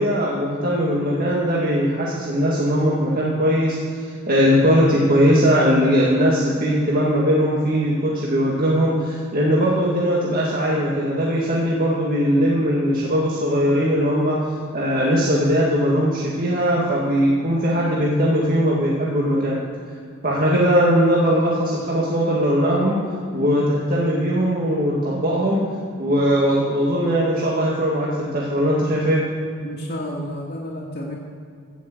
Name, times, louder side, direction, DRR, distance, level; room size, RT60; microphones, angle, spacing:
voice 1, 0.0-14.4 14.7-19.6 20.2-23.0 23.3-25.6 26.0-29.2, equal, 45° right, -5 dB, 1.9 m, -20 dB
voice 2, 29.6-31.2, left 1 dB, 50° left, -5 dB, 2.0 m, -31 dB
15.5 x 6.2 x 7.9 m, 2.3 s
head